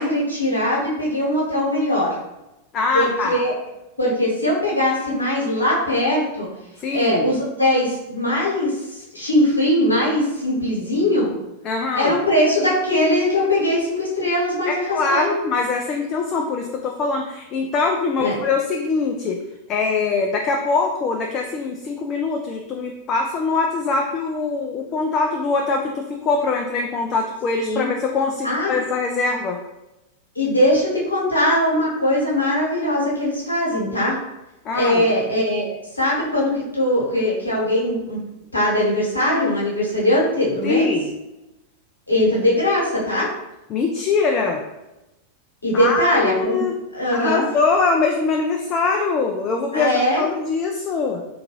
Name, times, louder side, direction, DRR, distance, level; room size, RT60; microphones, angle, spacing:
voice 1, 0.0-2.2 2.9-3.5 4.0-6.5 6.9-11.3 11.9-14.8 15.1-15.3 18.2-18.3 27.5-27.9 28.4-28.8 30.3-34.2 34.7-38.2 38.5-40.9 42.1-43.3 45.6-46.6 46.9-47.4 49.7-50.2, left 1 dB, 80° left, -5 dB, 1.0 m, -20 dB
voice 2, 2.7-3.4 6.8-7.3 11.6-12.2 14.7-19.4 19.7-29.6 34.7-35.1 40.6-41.1 43.7-44.6 45.7-46.8 47.1-49.9 50.2-51.2, left 4 dB, 30° left, 2 dB, 0.3 m, -23 dB
3.7 x 2.3 x 2.9 m, 0.96 s
figure-of-eight pair, 90°, 0 cm